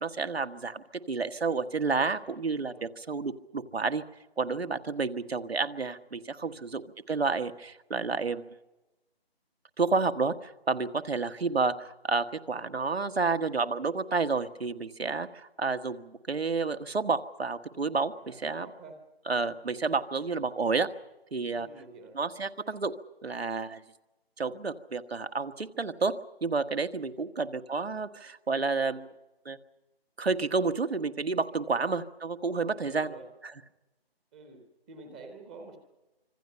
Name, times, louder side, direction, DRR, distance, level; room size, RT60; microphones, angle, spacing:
voice 1, 0.0-4.0 4.4-6.8 7.1-8.5 9.8-18.7 19.3-20.9 21.3-21.7 22.1-22.9 23.2-23.8 24.4-29.1 29.4-29.6 30.2-33.1, right 4 dB, 75° right, 9 dB, 1.5 m, -30 dB
voice 2, 18.2-18.9 21.5-22.2 27.1-27.2 31.6-31.8 32.7-33.3 34.3-35.8, right 3 dB, 5° right, 5 dB, 0.8 m, -49 dB
25.5 x 25.5 x 5.6 m, 1.0 s
figure-of-eight pair, 155°, 31 cm